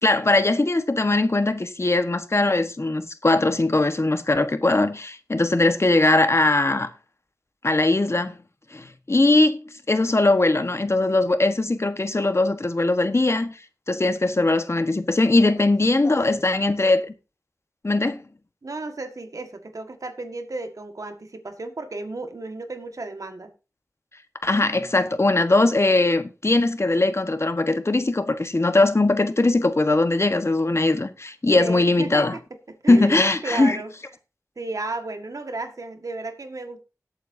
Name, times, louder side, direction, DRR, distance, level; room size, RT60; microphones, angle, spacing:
voice 1, 0.0-6.9 7.6-8.3 8.7-9.6 9.9-13.5 13.9-17.1 17.8-18.2 24.4-32.3 32.9-33.8, left 2 dB, 50° left, 1.3 m, -20 dB
voice 2, 18.6-23.5 31.6-32.4 32.7-33.9 34.5-36.8, right 2 dB, 75° right, 1.7 m, -34 dB
18.5 x 8.6 x 2.7 m
wide cardioid pair, 40°, 6 cm